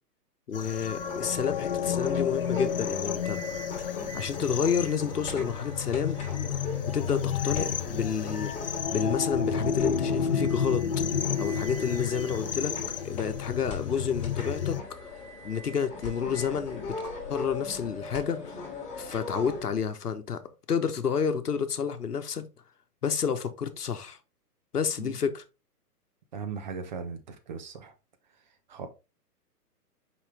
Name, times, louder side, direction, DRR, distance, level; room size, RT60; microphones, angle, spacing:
voice 1, 0.5-3.4 3.7-3.9 4.1-6.2 6.9-10.9 11.4-12.7 13.0-15.1 15.4-17.0 17.3-20.4 20.7-22.4 23.0-24.2 24.7-25.4, left 7 dB, 70° left, 1.0 m, -30 dB
sound 1, 0.5-14.8, left 7 dB, 40° left, 0.4 m, -31 dB
sound 2, 1.0-19.6, left 3 dB, 15° left, 2.9 m, -39 dB
voice 2, 26.3-27.9 28.7-28.9, right 5 dB, 30° right, 0.7 m, -38 dB
5.7 x 5.1 x 3.3 m
figure-of-eight pair, 125°, 48 cm